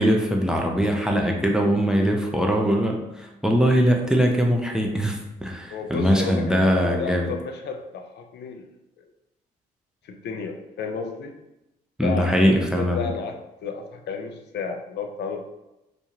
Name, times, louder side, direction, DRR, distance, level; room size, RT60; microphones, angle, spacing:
voice 1, 0.0-7.3 12.0-13.1, equal, 5° right, 1 dB, 0.5 m, -21 dB
voice 2, 5.7-8.7 10.0-11.3 12.0-15.5, left 5 dB, 55° left, 4 dB, 0.5 m, -32 dB
2.9 x 2.2 x 2.9 m, 0.93 s
hypercardioid pair, 50°, 21 cm